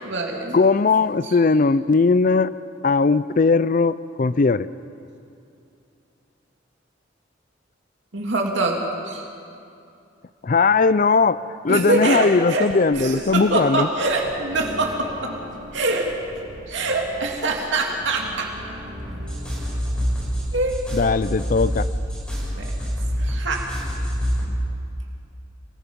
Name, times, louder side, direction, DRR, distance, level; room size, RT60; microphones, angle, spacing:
voice 1, 0.0-0.6 1.3-1.4 8.1-8.7 9.0-9.3 11.7-12.7 12.9-15.3 15.7-16.1 16.7-18.5 19.2-19.4 20.5-20.8 22.6-22.7 23.2-23.6, right 2 dB, 75° right, 0 dB, 2.5 m, -24 dB
voice 2, 0.5-2.5 2.8-4.7 10.4-13.9 20.9-21.9, left 4 dB, 45° left, 15 dB, 0.4 m, -19 dB
sound 1, 12.9-20.5, equal, 45° right, 2.3 m, -41 dB
sound 2, 19.0-24.6, equal, 5° left, 6.9 m, -26 dB
29.0 x 19.5 x 5.3 m, 2.6 s
head